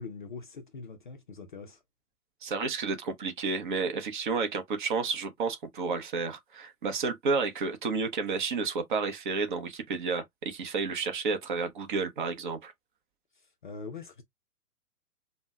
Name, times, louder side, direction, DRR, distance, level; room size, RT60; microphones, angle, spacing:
voice 1, 0.0-1.8 13.4-14.2, left 4 dB, 35° left, 0.4 m, -43 dB
voice 2, 2.4-12.7, right 4 dB, 35° right, 0.6 m, -31 dB
5.2 x 2.1 x 2.2 m
figure-of-eight pair, 115°, 46 cm